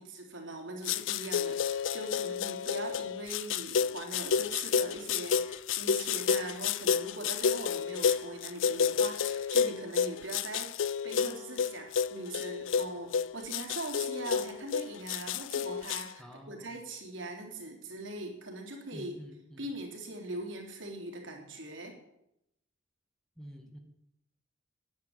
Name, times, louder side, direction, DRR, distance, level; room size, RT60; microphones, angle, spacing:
voice 1, 0.0-19.2 19.6-21.9, right 2 dB, 80° right, 1 dB, 3.5 m, -41 dB
sound 1, 0.9-16.0, left 6 dB, 80° left, 0.5 m, -30 dB
voice 2, 16.2-16.8 18.9-19.7 23.4-23.8, equal, 5° left, 2 dB, 1.9 m, -48 dB
10.5 x 10.0 x 8.7 m, 0.82 s
head